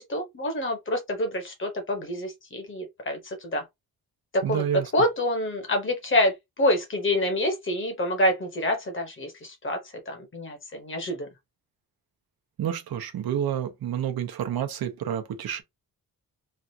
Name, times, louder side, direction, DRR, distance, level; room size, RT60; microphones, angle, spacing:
voice 1, 0.0-3.6 4.3-11.3, left 1 dB, 35° left, 1.0 m, -27 dB
voice 2, 4.4-4.9 12.6-15.6, right 9 dB, 75° right, 0.7 m, -29 dB
3.3 x 2.4 x 2.7 m
wide cardioid pair, 170°, 36 cm